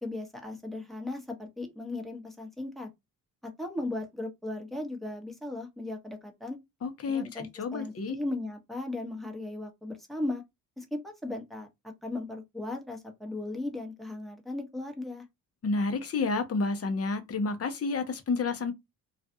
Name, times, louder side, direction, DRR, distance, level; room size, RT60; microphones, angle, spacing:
voice 1, 0.0-2.9 3.4-6.6 7.1-10.4 10.8-11.7 12.0-15.2, left 2 dB, ahead, 0.9 m, -37 dB
voice 2, 6.8-8.2 15.6-18.7, left 4 dB, 35° left, 0.8 m, -30 dB
2.4 x 2.3 x 2.7 m
hypercardioid pair, 50°, 43 cm